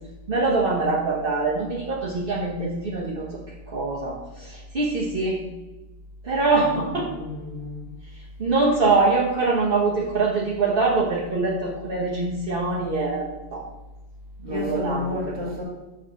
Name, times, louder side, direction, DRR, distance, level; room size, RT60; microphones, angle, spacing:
voice 1, 0.3-3.4 3.7-5.4 6.2-7.1 8.4-13.6 14.4-15.5, right 3 dB, 60° right, -4 dB, 1.1 m, -24 dB
voice 2, 6.6-7.9 14.5-15.6, left 2 dB, 25° right, -2 dB, 1.6 m, -31 dB
6.0 x 3.9 x 5.7 m, 1.1 s
omnidirectional pair, 1.1 m